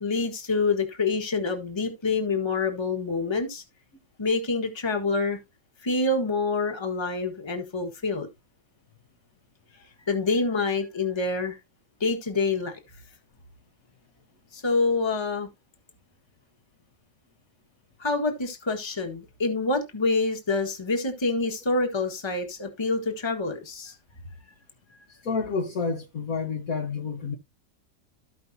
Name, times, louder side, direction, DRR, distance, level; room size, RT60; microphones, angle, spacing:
voice 1, 0.0-3.6 4.2-5.4 5.8-8.3 10.1-11.6 12.0-12.7 14.5-15.5 18.0-23.9, left 3 dB, 15° left, 1.4 m, -26 dB
voice 2, 25.2-27.4, left 4 dB, 55° left, 1.5 m, -29 dB
14.5 x 5.3 x 2.8 m
omnidirectional pair, 1.9 m